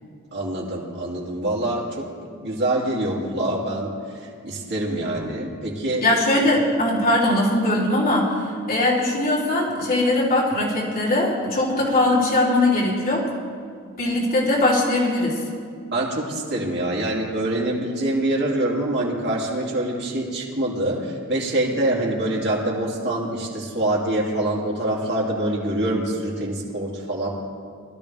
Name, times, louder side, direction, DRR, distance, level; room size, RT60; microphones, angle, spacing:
voice 1, 0.3-2.1 2.4-3.9 4.2-6.0 15.9-27.3, right 1 dB, 55° right, -4 dB, 2.8 m, -25 dB
voice 2, 6.0-13.2 14.0-15.4, left 1 dB, 45° left, -7 dB, 3.6 m, -20 dB
20.0 x 12.5 x 3.5 m, 2.3 s
head